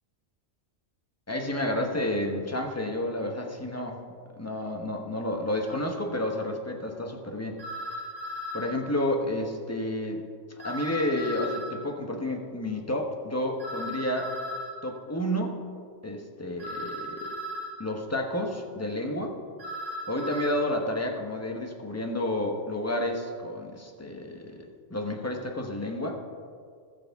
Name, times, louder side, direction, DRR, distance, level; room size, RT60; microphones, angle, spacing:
voice 1, 1.3-4.0 4.3-7.6 8.5-10.3 10.6-14.3 14.8-15.6 16.0-17.3 17.8-19.4 20.1-26.2, left 1 dB, 15° left, 2 dB, 0.9 m, -30 dB
sound 1, 5.7-5.8 7.6-8.7 10.6-11.7 13.6-14.7 16.6-17.7 19.6-20.6, equal, 60° right, 2.9 m, -36 dB
18.5 x 6.6 x 3.6 m, 2.1 s
omnidirectional pair, 1.4 m